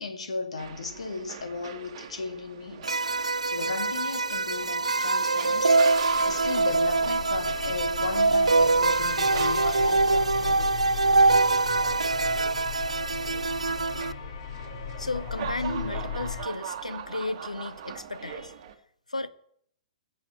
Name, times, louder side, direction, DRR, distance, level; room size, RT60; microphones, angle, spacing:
voice 1, 0.0-11.0, left 4 dB, 65° left, 2.3 m, -36 dB
sound 1, 0.6-18.7, right 8 dB, 40° right, 1.6 m, -42 dB
sound 2, 2.8-14.1, right 3 dB, 75° right, 0.4 m, -24 dB
sound 3, 5.8-16.5, left 10 dB, 45° left, 0.8 m, -38 dB
voice 2, 15.0-18.5 19.1-19.3, left 2 dB, 80° left, 1.0 m, -34 dB
17.5 x 7.0 x 7.8 m
figure-of-eight pair, 115°, 4 cm